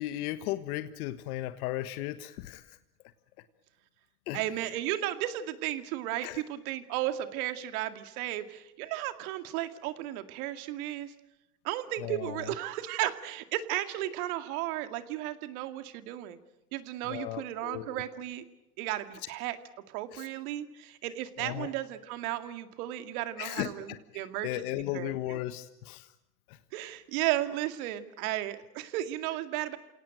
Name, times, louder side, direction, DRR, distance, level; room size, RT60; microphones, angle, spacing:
voice 1, 0.0-2.8 4.3-4.4 6.2-6.4 12.0-12.5 17.1-18.0 20.1-20.3 21.4-21.7 23.4-26.1 26.5-26.6, left 14 dB, 65° left, 11 dB, 1.5 m, -36 dB
voice 2, 4.3-11.1 11.6-16.4 16.7-18.4 18.8-19.6 19.9-24.6 24.9-25.4 26.7-29.8, right 14 dB, 65° right, 9 dB, 2.3 m, -34 dB
28.5 x 18.0 x 9.1 m, 0.92 s
hypercardioid pair, 110°, 47 cm